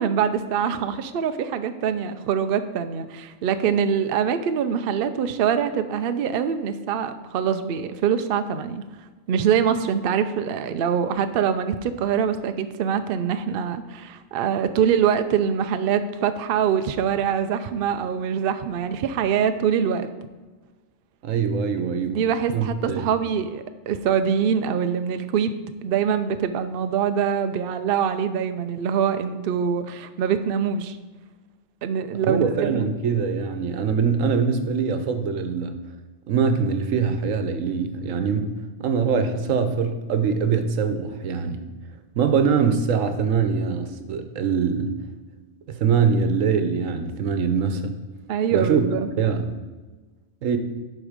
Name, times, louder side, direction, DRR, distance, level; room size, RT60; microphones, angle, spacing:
voice 1, 0.0-8.8 9.3-20.1 21.8-25.5 25.8-31.0 31.8-32.9 48.3-49.1, right 7 dB, 60° right, 9 dB, 0.7 m, -24 dB
voice 2, 21.2-22.2 22.5-23.1 32.3-35.7 36.3-38.5 38.8-41.6 42.2-44.9 45.8-47.9 48.5-48.8 49.2-49.5 50.4-50.6, right 6 dB, 85° right, 8 dB, 1.2 m, -23 dB
11.0 x 4.3 x 5.1 m, 1.3 s
omnidirectional pair, 1.3 m